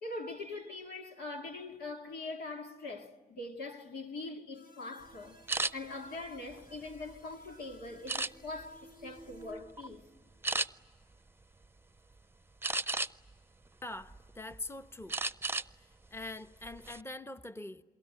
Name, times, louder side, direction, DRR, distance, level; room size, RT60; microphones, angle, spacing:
voice 1, 0.0-5.4 5.7-10.1 12.9-13.0, left 2 dB, 90° left, 2.2 m, -42 dB
sound 1, 4.5-9.5, right 1 dB, 65° left, 5.6 m, -57 dB
sound 2, 5.5-5.7 6.4-7.3 8.1-8.7 9.2-9.4 9.8-9.9 10.4-10.7 12.6-13.3 13.8-14.6 15.1-15.7 16.0-16.2 16.6-17.0, right 3 dB, 15° right, 0.7 m, -34 dB
voice 2, 13.8-15.2 15.7-17.8, left 2 dB, 15° left, 1.0 m, -44 dB
28.0 x 22.5 x 9.0 m
cardioid pair, 50°, 16 cm